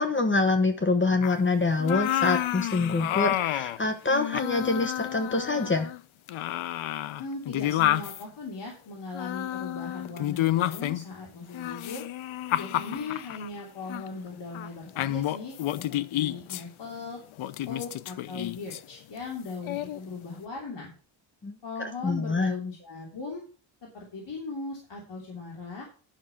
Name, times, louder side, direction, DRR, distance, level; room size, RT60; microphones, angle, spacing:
voice 1, 0.0-5.9 21.4-21.5 22.0-22.5, left 3 dB, 25° left, 7 dB, 1.1 m, -25 dB
sound 1, 1.2-1.4 1.8-3.8 4.1-6.0 6.3-8.2 9.1-11.1 11.5-13.5 13.9-14.1 14.5-14.7 15.0-16.6 17.4-18.8 19.6-20.0, left 13 dB, 90° left, 0.7 m, -30 dB
voice 2, 7.2-12.1 12.6-15.6 15.9-17.2 17.7-20.9 21.6-23.4 23.9-25.9, left 4 dB, 60° left, -1 dB, 3.1 m, -38 dB
10.0 x 6.2 x 5.6 m, 0.37 s
cardioid pair, 115°, 47 cm